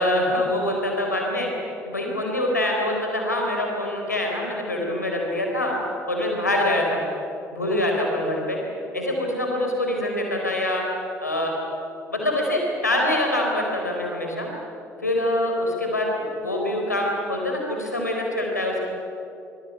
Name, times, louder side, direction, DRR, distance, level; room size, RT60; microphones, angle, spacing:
voice 1, 0.0-1.5 1.9-5.7 6.1-7.0 7.5-8.6 8.9-10.8 11.2-11.5 12.1-14.5 15.0-18.8, left 1 dB, 90° left, 0 dB, 4.4 m, -24 dB
25.5 x 22.0 x 8.7 m, 2.9 s
figure-of-eight pair, 55°, 9 cm